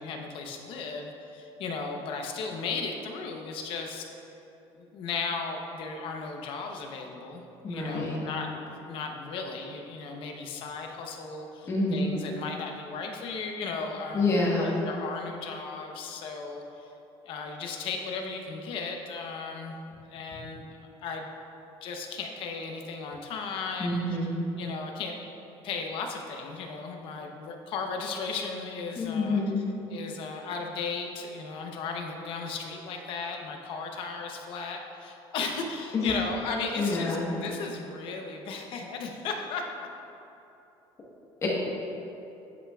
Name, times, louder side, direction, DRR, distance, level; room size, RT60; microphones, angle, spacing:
voice 1, 0.0-4.1 4.8-7.4 7.7-16.8 17.2-19.8 20.1-21.3 21.8-24.2 24.6-25.1 25.6-29.4 29.9-39.9, left 4 dB, 55° left, 3 dB, 0.8 m, -36 dB
voice 2, 7.6-8.2 11.7-12.0 14.1-14.8 23.8-24.4 29.0-29.7 35.9-36.1 36.8-37.3 41.4-41.5, left 2 dB, 25° left, -3 dB, 1.3 m, -27 dB
9.0 x 8.3 x 2.4 m, 2.9 s
cardioid pair, 165°, 10 cm